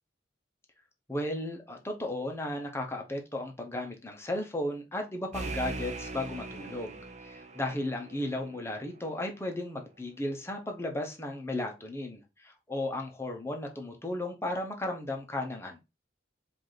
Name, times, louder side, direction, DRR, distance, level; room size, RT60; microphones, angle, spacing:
voice 1, 1.1-15.8, left 1 dB, 15° left, 0.8 m, -35 dB
sound 1, 5.3-8.8, right 3 dB, 35° right, 0.7 m, -40 dB
4.8 x 2.6 x 3.9 m
head